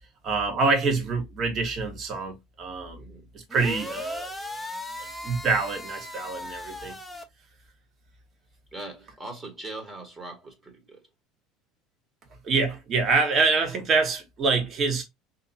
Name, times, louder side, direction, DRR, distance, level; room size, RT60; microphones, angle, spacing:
voice 1, 0.2-3.0 3.3-4.3 5.0-7.0 12.4-15.0, right 4 dB, 40° right, 1.3 m, -26 dB
voice 2, 3.0-3.3 8.7-11.1, right 2 dB, 20° right, 1.2 m, -41 dB
sound 1, 3.5-7.2, left 1 dB, 5° left, 0.8 m, -37 dB
3.5 x 2.8 x 2.7 m
figure-of-eight pair, 65°, 0 cm